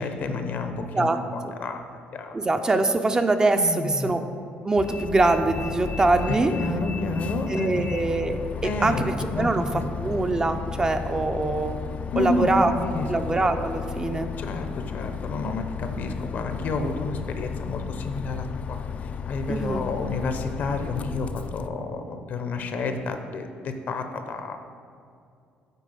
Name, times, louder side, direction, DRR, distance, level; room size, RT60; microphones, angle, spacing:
voice 1, 0.0-1.8 2.1-2.3 3.5-4.1 6.3-8.0 8.6-9.0 9.3-9.8 12.1-12.5 12.8-13.3 14.4-24.6, left 3 dB, 55° left, 7 dB, 0.7 m, -30 dB
voice 2, 2.3-4.2 4.6-6.5 7.5-9.6 10.0-11.8 12.2-12.7 13.1-14.3 19.5-19.9, right 2 dB, 20° right, 7 dB, 0.5 m, -23 dB
Bus, 4.8-21.7, left 6 dB, 40° left, 0.3 m, -34 dB
8.3 x 4.2 x 5.4 m, 2.4 s
cardioid pair, 105°, 3 cm